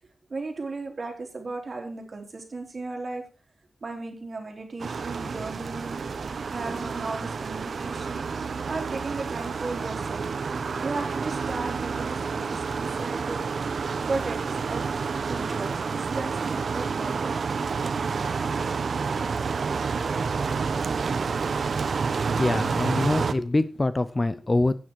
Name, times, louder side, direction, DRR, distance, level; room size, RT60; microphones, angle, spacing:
voice 1, 0.3-3.2 3.8-6.0 6.5-8.3 8.7-10.3 10.8-13.4 14.1-14.4 14.7-14.8 15.3-17.3, right 3 dB, 45° right, 2 dB, 3.4 m, -35 dB
sound 1, 4.8-23.3, right 5 dB, 70° right, 0.8 m, -29 dB
voice 2, 22.4-24.8, left 2 dB, 25° left, 14 dB, 0.6 m, -24 dB
12.0 x 9.2 x 4.6 m, 0.34 s
wide cardioid pair, 155°, 0 cm